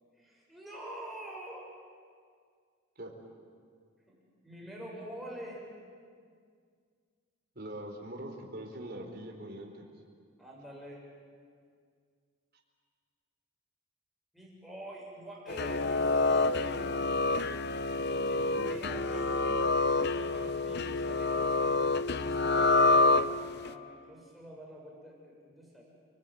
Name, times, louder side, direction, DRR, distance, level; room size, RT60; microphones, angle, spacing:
voice 1, 0.2-1.6 4.1-4.2 4.4-5.6 10.4-11.0 14.3-17.0 17.9-19.6 20.0-25.8, right 1 dB, ahead, -4 dB, 6.8 m, -46 dB
voice 2, 7.5-9.9 18.2-18.8, right 1 dB, 50° right, 1 dB, 4.3 m, -43 dB
sound 1, 15.5-23.7, left 3 dB, 55° left, 0.8 m, -27 dB
29.5 x 21.0 x 9.4 m, 2.1 s
head